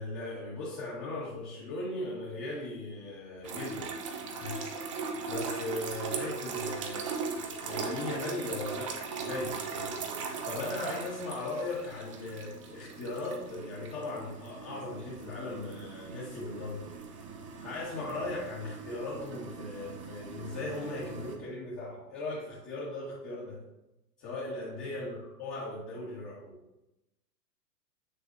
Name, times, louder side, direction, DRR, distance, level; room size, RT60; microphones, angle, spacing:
voice 1, 0.0-3.9 4.1-4.8 5.3-7.1 7.6-16.9 17.6-23.6 24.2-26.6, left 2 dB, 25° left, -6 dB, 1.8 m, -38 dB
sound 1, 3.4-21.4, right 5 dB, 20° right, 0.4 m, -39 dB
7.4 x 6.4 x 2.7 m, 0.94 s
figure-of-eight pair, 110°, 49 cm